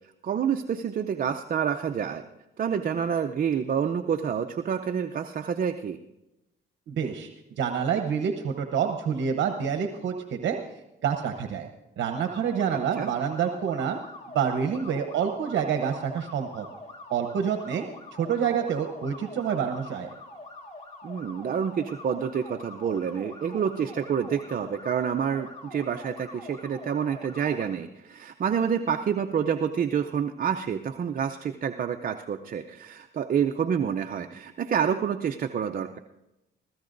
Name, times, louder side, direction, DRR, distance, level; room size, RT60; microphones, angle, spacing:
voice 1, 0.2-2.2 2.6-6.0 12.7-13.1 21.0-36.0, right 7 dB, 45° right, 5 dB, 0.6 m, -28 dB
voice 2, 6.9-7.3 7.6-10.6 11.0-11.7 12.0-14.0 14.3-16.7 17.1-17.8 18.1-20.1, right 7 dB, 70° right, 4 dB, 1.0 m, -27 dB
sound 1, 12.1-27.7, left 2 dB, 35° left, 2.5 m, -45 dB
22.5 x 15.5 x 2.6 m, 0.95 s
cardioid pair, 90°, 20 cm